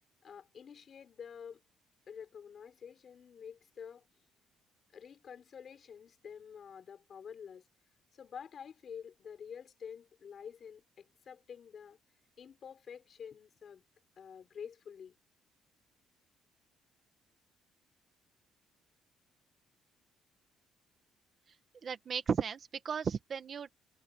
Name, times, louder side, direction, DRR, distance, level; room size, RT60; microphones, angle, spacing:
voice 1, 0.2-1.6 2.1-4.1 4.9-7.6 8.1-12.0 12.4-13.8 14.2-15.1, left 7 dB, 35° left, 5.2 m, -49 dB
voice 2, 21.8-23.8, right 6 dB, 30° right, 1.6 m, -35 dB
cardioid pair, 180°, 0 cm